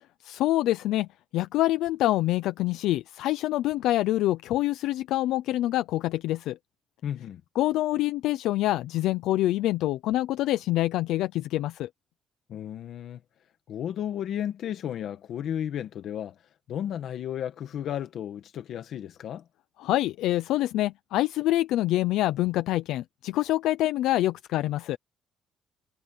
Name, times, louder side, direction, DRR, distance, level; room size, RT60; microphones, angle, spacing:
voice 1, 0.2-6.6 7.6-11.9 19.8-25.0, left 15 dB, 85° left, 0.6 m, -26 dB
voice 2, 7.0-7.4 12.5-13.2 13.7-16.4 16.7-19.4, left 10 dB, 55° left, 1.4 m, -33 dB
cardioid pair, 165°, 0 cm